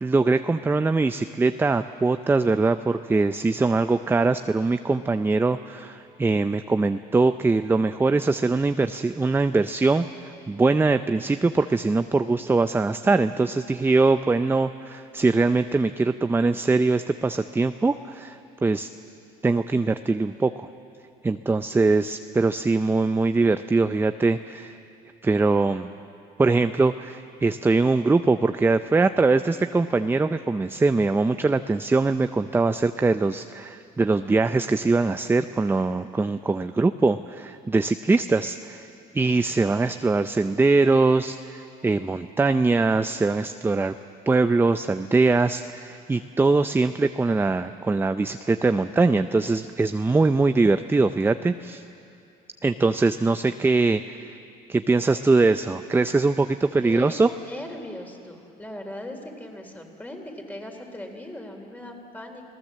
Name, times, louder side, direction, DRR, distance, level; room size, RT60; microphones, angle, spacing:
voice 1, 0.0-18.9 19.4-20.7 21.2-24.8 25.2-25.9 26.4-38.9 39.1-43.9 44.3-51.8 52.6-54.4 54.7-57.3, right 3 dB, 15° right, 10 dB, 0.5 m, -22 dB
voice 2, 56.8-62.4, left 1 dB, 10° left, 3 dB, 3.6 m, -39 dB
28.5 x 18.5 x 7.5 m, 2.6 s
cardioid pair, 110°, 17 cm